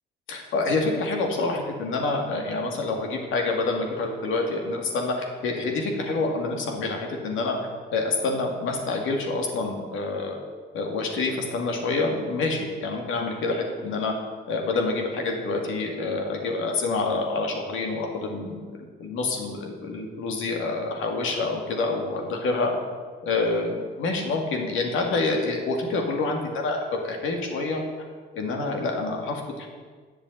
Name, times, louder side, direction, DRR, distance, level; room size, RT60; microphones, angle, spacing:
voice 1, 0.3-7.6 7.9-10.4 10.7-14.1 14.5-22.7 23.2-27.8 28.3-29.7, left 3 dB, 80° left, 2 dB, 2.2 m, -27 dB
8.6 x 7.0 x 8.3 m, 1.5 s
cardioid pair, 90°, 20 cm